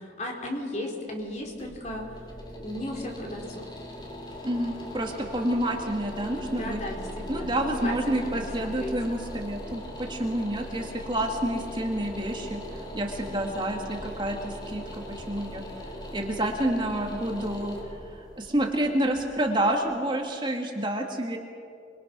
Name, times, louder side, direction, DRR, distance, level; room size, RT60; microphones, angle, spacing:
voice 1, 0.0-2.3 2.6-3.7 6.5-9.0, left 1 dB, 40° left, 1 dB, 4.0 m, -35 dB
sound 1, 1.2-20.2, equal, 25° left, 2.9 m, -40 dB
voice 2, 4.4-6.8 7.3-12.6 12.9-15.6 16.1-17.8 18.1-21.4, right 1 dB, 25° right, 1 dB, 2.2 m, -29 dB
27.0 x 23.0 x 6.2 m, 2.3 s
head